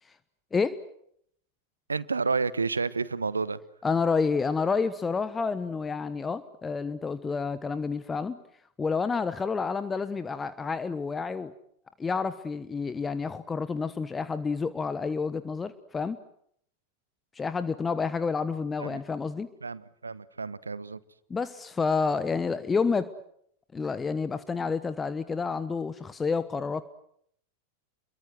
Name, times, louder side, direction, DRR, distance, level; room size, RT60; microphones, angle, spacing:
voice 1, 1.9-3.6 18.8-19.0 19.6-21.0, right 4 dB, 75° right, 19 dB, 1.1 m, -30 dB
voice 2, 3.8-8.4 8.8-11.5 12.0-16.2 17.3-19.5 21.3-23.1 23.7-26.8, left 5 dB, 15° left, 14 dB, 1.2 m, -29 dB
29.5 x 23.0 x 7.9 m, 0.71 s
figure-of-eight pair, 90°, 0 cm